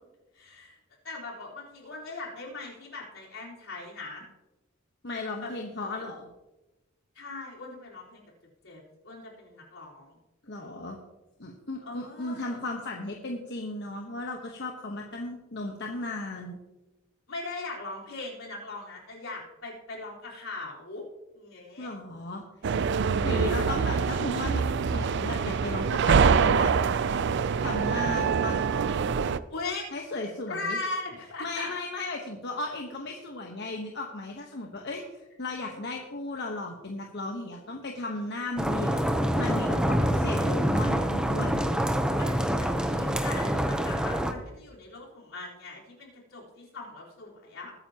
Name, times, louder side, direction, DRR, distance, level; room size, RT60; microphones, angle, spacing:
voice 1, 0.3-0.8 1.0-4.2 5.4-5.5 7.1-8.2 8.6-10.2 11.8-12.6 17.3-21.1 21.3-21.9 29.5-29.9 30.5-31.7 42.2-47.7, left 3 dB, 80° left, -4 dB, 4.2 m, -39 dB
voice 2, 5.0-6.3 10.5-11.0 11.4-16.6 21.8-22.4 23.2-24.6 24.9-26.7 27.6-28.6 29.9-30.8 31.4-35.0 35.4-39.0 39.4-41.6, left 2 dB, 60° left, 1 dB, 1.2 m, -35 dB
sound 1, 22.6-29.4, right 6 dB, 60° right, 0.4 m, -25 dB
sound 2, 38.6-44.3, equal, 5° right, 0.8 m, -26 dB
21.0 x 9.5 x 2.9 m, 1.1 s
head